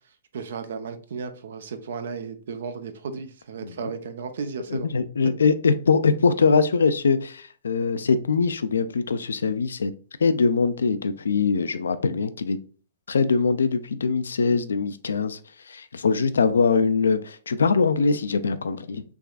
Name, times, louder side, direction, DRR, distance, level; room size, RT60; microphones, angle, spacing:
voice 1, 0.3-4.9, right 5 dB, 70° right, 0.6 m, -34 dB
voice 2, 4.7-9.9 10.2-12.6 13.1-15.4 15.7-19.0, left 5 dB, 80° left, 0.4 m, -22 dB
3.5 x 3.1 x 2.3 m
hypercardioid pair, 120°, 0 cm